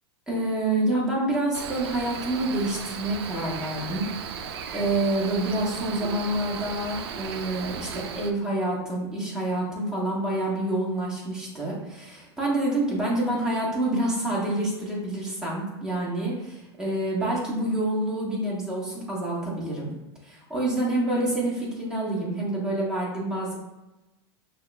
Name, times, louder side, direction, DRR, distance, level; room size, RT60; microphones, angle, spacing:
voice 1, 0.3-4.0 4.4-4.5 4.7-19.9 20.2-23.5, right 1 dB, 5° right, -6 dB, 1.4 m, -27 dB
Cricket, 1.5-8.3, right 7 dB, 70° right, 0.4 m, -36 dB
6.0 x 2.3 x 2.3 m, 1.0 s
hypercardioid pair, 105°, 14 cm